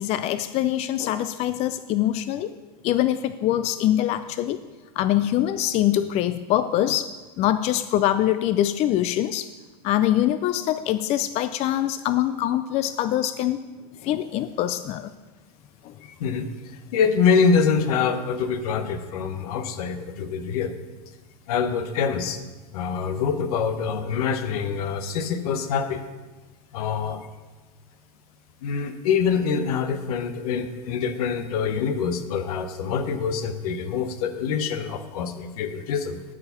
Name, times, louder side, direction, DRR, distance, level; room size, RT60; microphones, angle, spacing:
voice 1, 0.0-2.5 2.8-4.6 5.0-7.1 7.4-9.5 9.8-13.6 14.0-15.1 15.8-15.9, left 12 dB, 35° left, 12 dB, 0.4 m, -24 dB
voice 2, 16.9-20.7 21.5-22.4 22.7-26.0 26.7-27.3 28.6-36.2, left 6 dB, 70° left, 9 dB, 1.0 m, -25 dB
12.5 x 4.9 x 5.7 m, 1.2 s
supercardioid pair, 120°, 20 cm